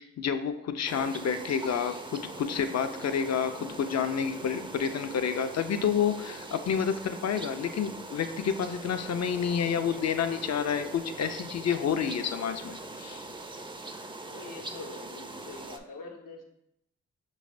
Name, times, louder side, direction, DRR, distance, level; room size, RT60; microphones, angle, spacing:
voice 1, 0.0-13.3, left 7 dB, 55° left, 9 dB, 0.5 m, -29 dB
sound 1, 0.9-15.8, right 2 dB, 15° right, 0.4 m, -42 dB
voice 2, 14.3-16.4, left 3 dB, 80° left, 0 dB, 0.8 m, -44 dB
5.7 x 3.1 x 2.5 m, 0.77 s
cardioid pair, 45°, 32 cm